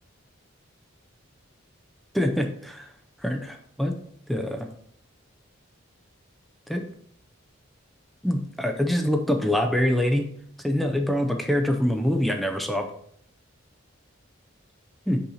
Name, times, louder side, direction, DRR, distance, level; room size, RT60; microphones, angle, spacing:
voice 1, 2.1-2.8 3.2-3.9 4.3-4.7 6.7-6.8 8.2-10.3 10.6-12.9 15.1-15.2, left 1 dB, ahead, 4 dB, 0.5 m, -24 dB
5.6 x 4.4 x 4.2 m, 0.64 s
head